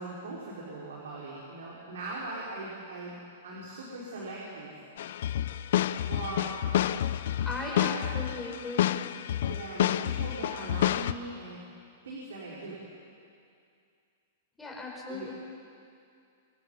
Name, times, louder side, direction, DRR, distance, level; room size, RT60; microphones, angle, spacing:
voice 1, 0.0-4.7 5.2-5.3 6.0-6.6 7.6-8.1 9.4-11.6 12.0-12.8 15.1-15.3, right 2 dB, 85° right, -5 dB, 5.0 m, -40 dB
sound 1, 5.0-11.1, left 11 dB, 65° left, 0.6 m, -29 dB
voice 2, 7.5-9.0 14.6-15.3, left 3 dB, 5° left, -3 dB, 5.2 m, -37 dB
25.0 x 22.5 x 5.7 m, 2.4 s
hypercardioid pair, 145°, 0 cm